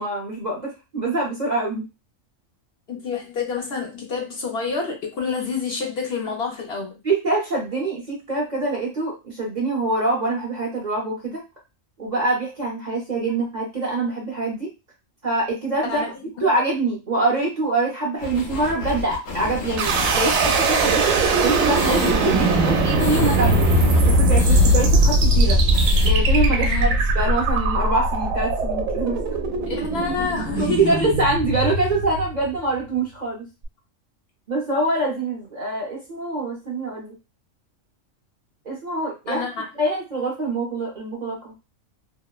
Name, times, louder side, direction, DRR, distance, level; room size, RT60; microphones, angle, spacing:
voice 1, 0.0-1.8 7.0-11.4 12.0-14.7 15.2-15.9 16.4-21.2 21.4-23.7 24.0-25.6 26.0-29.4 30.6-33.5 34.5-37.1 38.7-39.5 39.8-41.5, right 2 dB, 40° right, -3 dB, 0.7 m, -24 dB
voice 2, 2.9-7.0 15.8-16.1 16.4-16.5 26.6-27.0 29.6-31.1 39.3-39.7, left 5 dB, 60° left, 0 dB, 0.8 m, -28 dB
sound 1, 18.2-24.8 25.1-25.2 25.5-26.1, left 1 dB, 80° left, 1.0 m, -32 dB
sound 2, 19.8-32.7, right 1 dB, 85° right, 1.0 m, -20 dB
2.8 x 2.0 x 2.3 m, 0.26 s
omnidirectional pair, 1.4 m